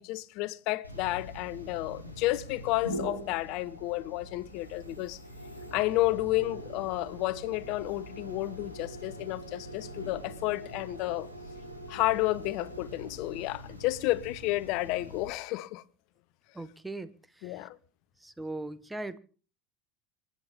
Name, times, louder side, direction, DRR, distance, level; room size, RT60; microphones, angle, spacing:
voice 1, 0.0-5.2 5.7-11.3 11.9-15.8 17.4-17.8, left 18 dB, 50° left, 0.8 m, -31 dB
sound 1, 0.8-15.3, equal, 85° right, 4.8 m, -43 dB
voice 2, 16.5-17.1 17.4-17.7 18.2-19.2, right 2 dB, 10° right, 1.1 m, -39 dB
27.5 x 10.5 x 3.6 m
figure-of-eight pair, 70°, 0 cm